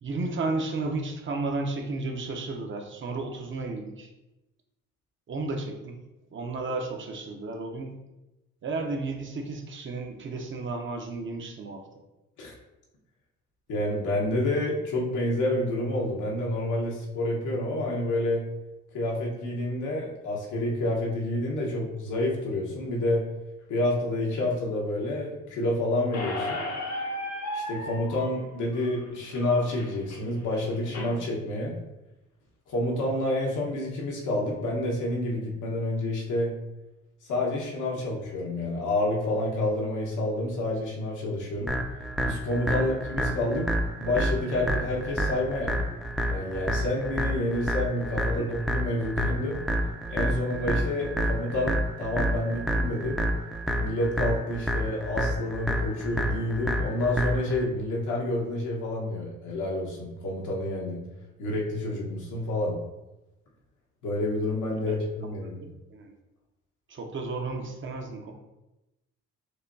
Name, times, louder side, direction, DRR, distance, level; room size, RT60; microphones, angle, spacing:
voice 1, 0.0-4.1 5.3-6.0 6.3-7.9 8.6-11.8 42.7-42.9 48.4-48.5 64.8-65.0 65.4-66.2 66.9-68.3, right 3 dB, 40° right, 3 dB, 0.7 m, -33 dB
voice 2, 13.7-18.4 18.9-23.2 23.7-26.6 27.5-31.7 32.7-36.5 37.3-41.7 42.2-43.7 44.0-45.8 46.3-49.6 50.1-53.2 53.8-61.0 61.4-62.8 64.0-65.6, left 1 dB, 80° left, -2 dB, 1.2 m, -28 dB
Squeak, 26.1-31.1, left 1 dB, 65° left, 0.9 m, -36 dB
sound 1, 41.7-57.7, equal, ahead, 0.5 m, -29 dB
6.5 x 2.2 x 2.7 m, 0.98 s
cardioid pair, 90°, 30 cm